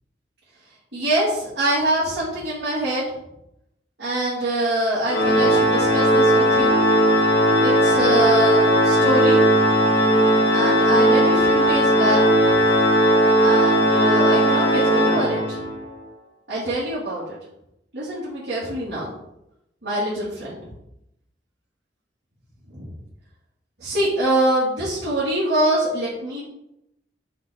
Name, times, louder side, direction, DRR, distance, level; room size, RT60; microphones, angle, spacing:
voice 1, 0.9-3.0 4.0-6.8 7.6-9.4 10.5-12.2 13.4-15.6 16.5-17.4 17.9-19.1 19.8-20.6 22.7-22.9 23.8-26.4, right 1 dB, 75° right, -11 dB, 3.1 m, -24 dB
Organ, 5.1-15.8, equal, 90° left, 1.7 m, -17 dB
7.6 x 4.7 x 4.7 m, 0.83 s
head